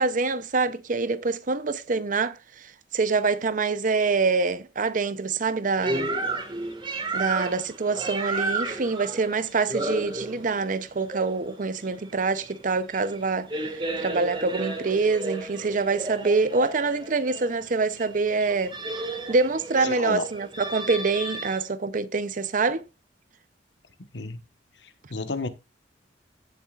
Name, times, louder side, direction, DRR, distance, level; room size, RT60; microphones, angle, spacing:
voice 1, 0.0-2.4 2.9-6.1 7.1-18.7 19.3-22.8, right 4 dB, 50° right, 0.7 m, -25 dB
sound 1, 5.8-21.6, right 2 dB, 25° right, 1.8 m, -33 dB
voice 2, 19.7-20.2 24.1-24.4 25.1-25.5, left 3 dB, 80° left, 1.2 m, -30 dB
15.5 x 7.0 x 2.4 m
head